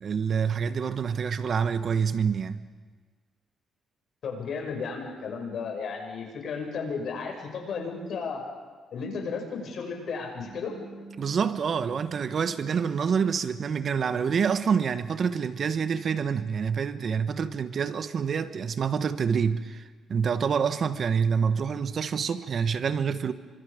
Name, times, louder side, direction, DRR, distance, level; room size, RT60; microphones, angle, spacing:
voice 1, 0.0-2.7 11.2-19.8 20.1-23.3, right 6 dB, 50° right, 1.2 m, -27 dB
voice 2, 4.2-8.4 8.9-10.7, left 5 dB, 65° left, 6.6 m, -34 dB
Bass guitar, 10.4-16.6, right 3 dB, 75° right, 4.3 m, -50 dB
30.0 x 25.0 x 5.1 m
cardioid pair, 90°, 0 cm